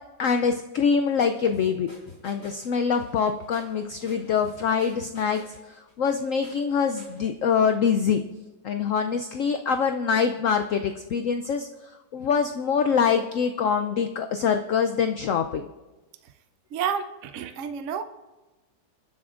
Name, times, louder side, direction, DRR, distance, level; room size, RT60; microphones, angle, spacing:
voice 1, 0.2-1.9 2.2-5.4 6.0-8.2 8.6-11.7 12.1-15.6, left 6 dB, 70° left, 7 dB, 0.7 m, -24 dB
sound 1, 1.1-7.3, left 1 dB, 25° left, 4.1 m, -50 dB
voice 2, 16.7-18.0, right 7 dB, 65° right, 9 dB, 0.7 m, -30 dB
27.0 x 10.5 x 2.5 m, 1.1 s
omnidirectional pair, 1.9 m